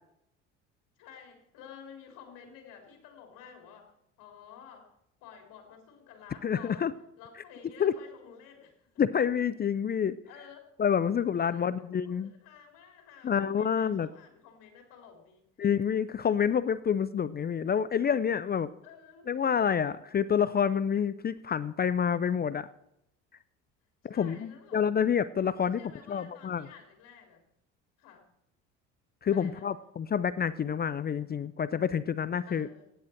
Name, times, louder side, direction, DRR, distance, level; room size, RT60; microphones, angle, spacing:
voice 1, 1.0-4.9 5.2-6.9 7.2-8.9 10.3-10.7 11.3-15.5 18.8-19.3 24.1-24.8 25.6-27.4 28.0-28.3 29.3-29.7 32.4-32.9, left 7 dB, 65° left, 2 dB, 3.4 m, -52 dB
voice 2, 6.4-6.9 7.8-7.9 9.0-10.2 10.8-12.3 13.2-14.1 15.6-18.7 19.3-22.7 24.0-25.8 26.1-26.7 29.2-32.7, left 7 dB, 25° left, 16 dB, 0.5 m, -28 dB
15.0 x 10.5 x 4.4 m, 0.78 s
hypercardioid pair, 65°, 35 cm